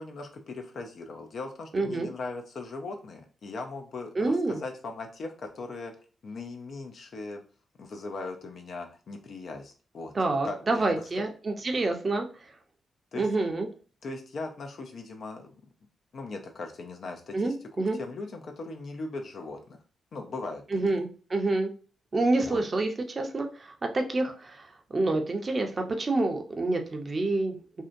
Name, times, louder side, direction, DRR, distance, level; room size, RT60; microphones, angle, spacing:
voice 1, 0.0-5.9 6.2-7.4 7.8-10.1 10.4-10.9 11.2-11.3 13.1-13.3 14.0-15.5 16.1-17.5 18.0-19.8 20.1-20.8 22.4-22.6, left 3 dB, 65° left, 4 dB, 0.5 m, -39 dB
voice 2, 1.7-2.1 4.2-4.6 10.1-12.3 13.2-13.7 17.3-18.0 20.7-21.7 22.1-27.8, right 2 dB, 45° right, 4 dB, 0.6 m, -28 dB
2.7 x 2.1 x 2.5 m, 0.37 s
supercardioid pair, 45°, 0 cm